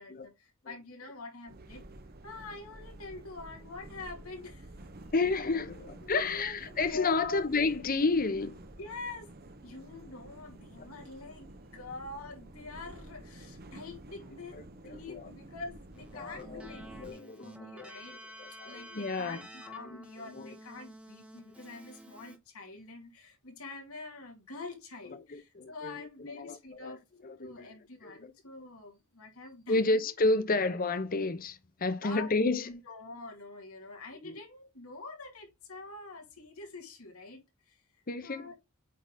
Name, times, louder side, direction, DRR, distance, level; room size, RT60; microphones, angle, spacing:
voice 1, 0.0-1.8 2.2-4.9 6.0-7.4 8.8-9.3 9.6-14.6 14.8-18.2 18.6-27.0 27.4-30.0 32.0-32.3 32.6-37.8 38.2-38.5, left 3 dB, 90° left, 2.4 m, -45 dB
sound 1, 1.5-17.1, right 1 dB, 45° right, 1.0 m, -50 dB
voice 2, 5.1-8.6 14.5-15.3 16.1-16.6 17.0-17.9 18.4-19.4 19.9-20.0 20.2-20.6 25.3-27.7 28.0-28.3 29.7-32.7 34.2-34.4 38.1-38.5, left 3 dB, 45° left, 0.8 m, -31 dB
Keyboard (musical), 15.9-22.4, equal, 5° right, 1.1 m, -50 dB
8.5 x 3.9 x 3.8 m
head